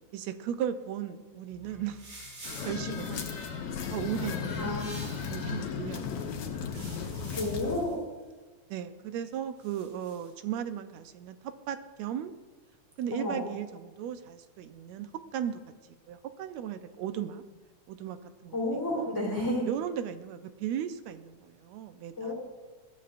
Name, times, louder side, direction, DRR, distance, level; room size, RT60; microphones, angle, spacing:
voice 1, 0.1-2.0 2.7-3.4 3.9-4.6 5.3-6.0 6.3-6.4 6.7-7.3 8.7-12.3 13.0-15.6 16.1-17.4 17.9-18.2 18.4-18.6 19.0-19.1 19.7-22.3, right 9 dB, 75° right, 10 dB, 1.8 m, -36 dB
sound 1, 1.5-5.6 6.4-8.0 9.6-10.3, right 1 dB, 50° right, 6.5 m, -49 dB
sound 2, 2.4-7.8, left 6 dB, 75° left, 2.5 m, -35 dB
voice 2, 4.6-4.9 7.3-8.0 13.1-13.4 18.5-19.7 22.2-22.3, left 1 dB, 5° left, -6 dB, 3.2 m, -31 dB
20.5 x 14.0 x 2.5 m, 1.3 s
omnidirectional pair, 3.4 m